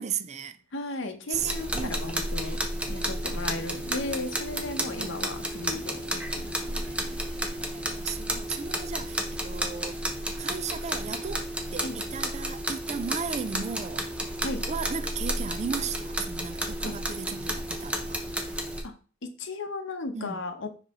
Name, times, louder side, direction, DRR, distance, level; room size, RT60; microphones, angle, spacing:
voice 1, 0.0-1.0 1.3-2.2 2.9-3.5 5.0-5.5 6.8-14.1 14.7-18.2 20.1-20.4, right 6 dB, 35° right, 0.4 m, -36 dB
voice 2, 0.7-2.6 2.9-6.8 11.8-12.0 14.4-14.6 16.8-16.9 18.8-18.9 19.2-20.7, left 2 dB, 65° left, 1.0 m, -35 dB
sound 1, 1.3-18.8, right 1 dB, 5° right, 0.8 m, -32 dB
5.5 x 4.8 x 3.6 m
head